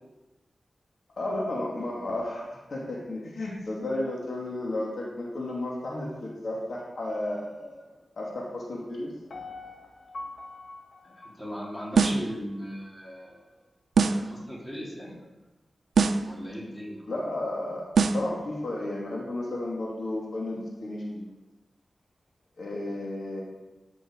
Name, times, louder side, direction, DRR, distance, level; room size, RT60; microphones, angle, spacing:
voice 1, 1.2-7.7 8.2-9.1 17.1-21.2 22.6-23.4, left 1 dB, 65° left, -3 dB, 2.6 m, -33 dB
Piano, 9.3-12.4 12.8-12.9, left 2 dB, 80° left, 2.2 m, -44 dB
voice 2, 11.0-13.5 14.1-15.2 16.2-17.1, equal, 10° left, -5 dB, 3.6 m, -38 dB
sound 1, 11.9-12.3 14.0-14.3 15.9-16.3 18.0-18.3, right 5 dB, 90° right, 0.7 m, -23 dB
12.5 x 9.0 x 4.8 m, 1.1 s
wide cardioid pair, 130°, 0 cm